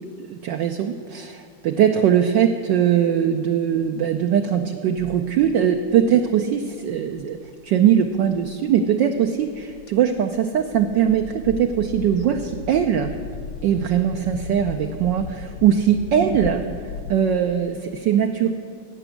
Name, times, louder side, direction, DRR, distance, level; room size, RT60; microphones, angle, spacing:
voice 1, 0.2-7.4 7.6-13.1 13.6-16.7 17.1-18.5, right 9 dB, 70° right, 5 dB, 1.1 m, -21 dB
sound 1, 5.0-17.1, left 6 dB, 75° left, 1.5 m, -38 dB
16.0 x 6.0 x 8.2 m, 2.2 s
omnidirectional pair, 2.4 m